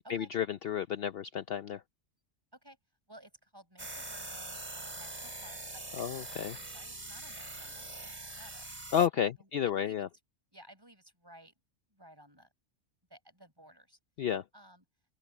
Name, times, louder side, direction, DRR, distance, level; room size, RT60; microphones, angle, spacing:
voice 1, 0.0-1.8 6.0-6.6 8.9-10.1 14.2-14.4, left 9 dB, 60° left, 0.8 m, -31 dB
voice 2, 3.1-6.2 6.5-8.8 9.2-10.1 10.5-11.5 11.9-12.5 13.1-14.0 14.5-14.8, right 1 dB, 20° right, 5.9 m, -56 dB
sound 1, 3.8-9.1, right 2 dB, 35° right, 3.2 m, -43 dB
open air
omnidirectional pair, 1.3 m